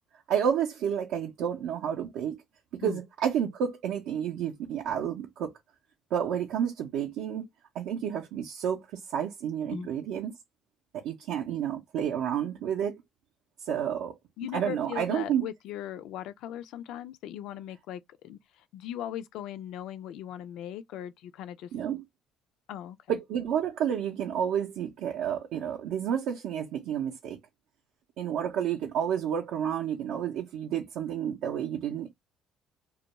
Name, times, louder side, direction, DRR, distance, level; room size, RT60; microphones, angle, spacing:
voice 1, 0.3-2.4 2.8-5.5 6.1-7.4 7.7-10.3 11.0-13.0 13.6-14.1 14.5-15.4 21.7-22.0 23.1-27.4 28.2-32.1, right 9 dB, 80° right, 0.5 m, -30 dB
voice 2, 14.4-18.4 18.7-21.7 22.7-23.2, left 11 dB, 75° left, 0.3 m, -39 dB
2.3 x 2.2 x 2.9 m
cardioid pair, 130°, 0 cm